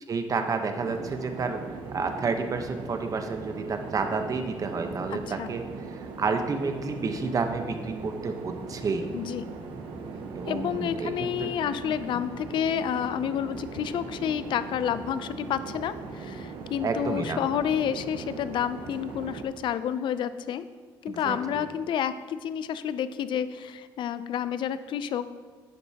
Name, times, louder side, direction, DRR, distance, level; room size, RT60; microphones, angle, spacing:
voice 1, 0.1-5.7 6.2-9.1 10.3-11.5 16.8-17.4 21.1-21.6, right 4 dB, 40° right, 6 dB, 1.0 m, -30 dB
sound 1, 0.8-19.4, right 4 dB, 85° right, 1.0 m, -39 dB
voice 2, 5.1-5.5 9.1-9.4 10.4-20.7 21.0-25.2, left 9 dB, 65° left, 13 dB, 0.5 m, -30 dB
11.5 x 7.9 x 2.9 m, 1.5 s
cardioid pair, 90°, 9 cm